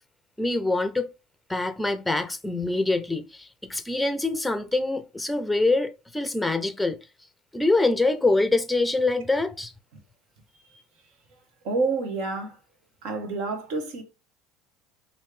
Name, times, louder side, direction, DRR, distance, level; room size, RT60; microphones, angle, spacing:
voice 1, 0.4-1.1 1.5-7.0 7.5-9.7, left 2 dB, 5° left, 0.6 m, -25 dB
voice 2, 11.6-12.6 13.0-14.0, right 3 dB, 70° right, 1.1 m, -28 dB
3.1 x 2.7 x 3.2 m
supercardioid pair, 85°, 0 cm